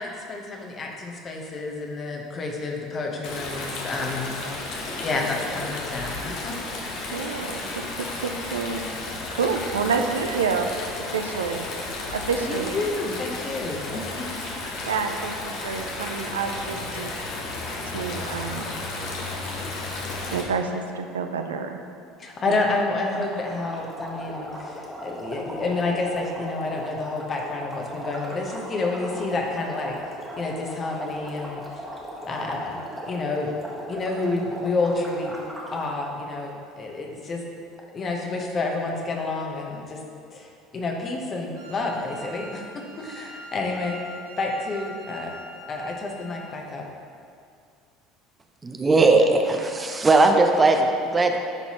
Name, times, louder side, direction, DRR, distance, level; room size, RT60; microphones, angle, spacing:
voice 1, 0.0-4.4 4.7-6.6 6.9-7.2 12.4-14.3 22.2-30.0 30.4-31.8 32.3-33.5 33.9-35.4 35.7-37.4 37.9-40.0 40.3-42.7 43.0-44.0 44.4-45.3 45.7-46.8, left 3 dB, 35° left, 0 dB, 1.1 m, -29 dB
Stream, 3.2-20.4, left 2 dB, 55° left, 1.0 m, -33 dB
voice 2, 7.0-8.9 9.3-10.7 11.1-11.7 12.1-12.8 14.8-17.1 17.8-18.7 19.7-19.8 20.3-21.8 22.5-22.6 23.1-23.3, right 5 dB, 80° right, 5 dB, 0.4 m, -28 dB
sound 1, 23.1-35.9, equal, 5° right, 1.4 m, -37 dB
Wind instrument woodwind instrument, 41.5-46.4, equal, 60° right, 1.1 m, -43 dB
voice 3, 48.6-51.4, right 3 dB, 20° right, 4 dB, 0.6 m, -19 dB
10.5 x 4.1 x 3.0 m, 2.4 s
hypercardioid pair, 65°, 0 cm